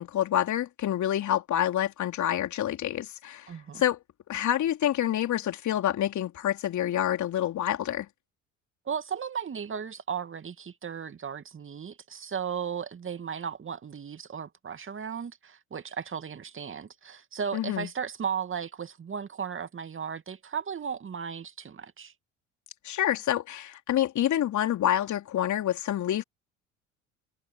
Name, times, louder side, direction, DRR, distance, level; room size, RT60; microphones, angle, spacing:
voice 1, 0.0-3.5 3.8-4.0 4.3-8.1 17.5-17.9 22.8-26.2, left 11 dB, 50° left, 3.7 m, -27 dB
voice 2, 3.5-3.8 8.9-22.1, right 7 dB, 35° right, 2.5 m, -35 dB
hypercardioid pair, 60°, 37 cm